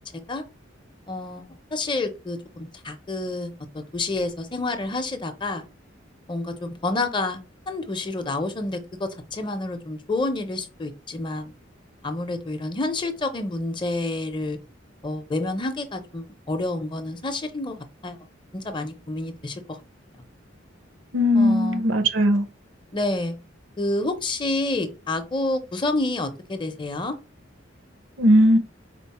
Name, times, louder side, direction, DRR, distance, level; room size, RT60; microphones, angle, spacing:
voice 1, 1.1-5.6 6.3-7.4 7.7-11.5 12.0-14.6 15.0-18.2 18.5-19.6 21.3-21.8 22.9-23.4 23.8-27.2, left 2 dB, 25° left, 0.6 m, -29 dB
voice 2, 21.1-22.5 28.2-28.6, equal, 70° right, 0.7 m, -18 dB
4.4 x 2.0 x 4.1 m
head